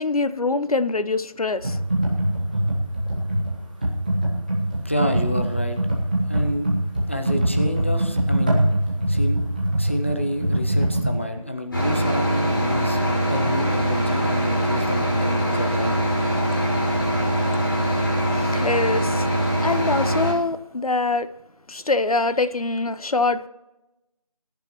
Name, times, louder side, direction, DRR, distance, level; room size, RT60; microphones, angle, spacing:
voice 1, 0.0-1.8 18.4-21.3 21.7-23.5, left 3 dB, 75° left, 14 dB, 0.8 m, -24 dB
Computer keyboard, 1.6-11.1, right 1 dB, 15° right, 1.3 m, -23 dB
voice 2, 4.8-5.8 6.3-6.7 7.1-8.6 9.1-9.4 9.8-13.0 13.3-15.9, equal, 20° left, 5 dB, 0.7 m, -28 dB
sound 1, 11.7-20.3, equal, 35° left, 5.4 m, -22 dB
21.5 x 10.5 x 3.1 m, 0.98 s
figure-of-eight pair, 175°, 19 cm